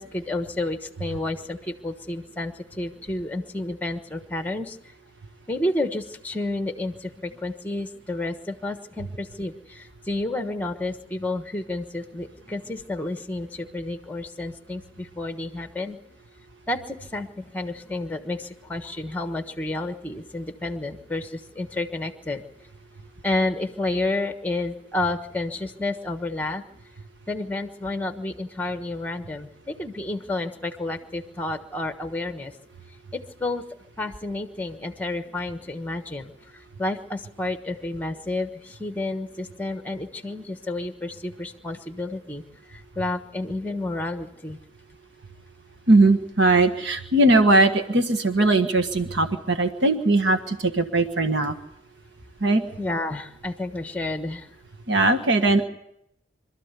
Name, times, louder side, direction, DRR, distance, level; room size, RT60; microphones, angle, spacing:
voice 1, 0.0-4.8 5.5-16.0 16.7-22.4 23.2-26.6 27.3-32.5 33.1-33.6 34.0-42.4 42.7-44.6 52.8-54.5, left 2 dB, 10° left, 8 dB, 1.2 m, -30 dB
voice 2, 45.9-51.5 52.4-52.6 54.9-55.6, right 2 dB, 65° right, 7 dB, 1.4 m, -19 dB
26.0 x 13.5 x 8.2 m, 0.80 s
head